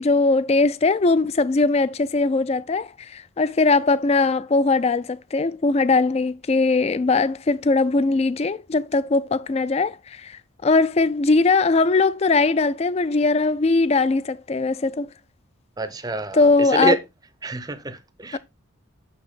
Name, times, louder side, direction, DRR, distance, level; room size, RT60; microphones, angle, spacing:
voice 1, 0.0-15.1 16.3-16.9 18.3-18.4, left 3 dB, 30° left, 0.3 m, -20 dB
voice 2, 15.8-17.0 17.4-18.4, right 2 dB, 20° right, 0.6 m, -26 dB
6.3 x 6.0 x 3.6 m
head